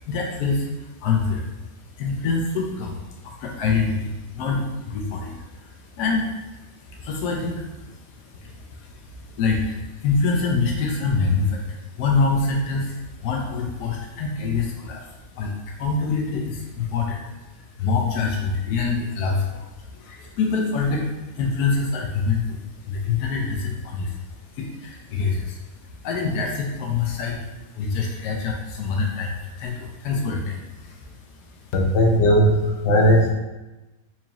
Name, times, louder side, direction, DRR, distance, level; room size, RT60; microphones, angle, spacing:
voice 1, 0.0-31.7, left 4 dB, 85° left, 0 dB, 1.1 m, -26 dB
voice 2, 31.7-33.3, equal, 60° left, 0 dB, 0.8 m, -17 dB
4.4 x 2.7 x 2.9 m, 1.1 s
omnidirectional pair, 1.6 m